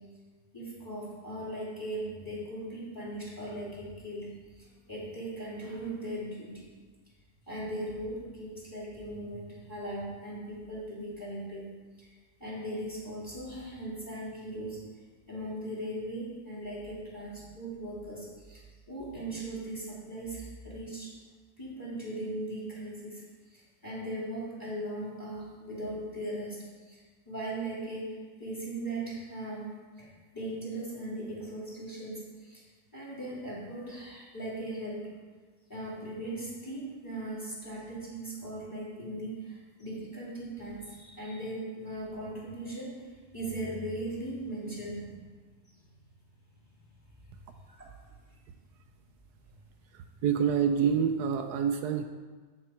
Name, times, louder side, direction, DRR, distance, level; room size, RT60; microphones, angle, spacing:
voice 1, 0.5-6.7 7.5-11.7 12.0-12.1 12.4-14.8 15.3-21.1 21.6-23.2 23.5-32.6 32.9-35.1 35.7-45.2 47.7-47.8, right 1 dB, 10° left, -7 dB, 3.0 m, -39 dB
voice 2, 49.9-52.0, right 7 dB, 80° right, 6 dB, 1.1 m, -27 dB
8.2 x 7.4 x 4.4 m, 1.4 s
omnidirectional pair, 1.7 m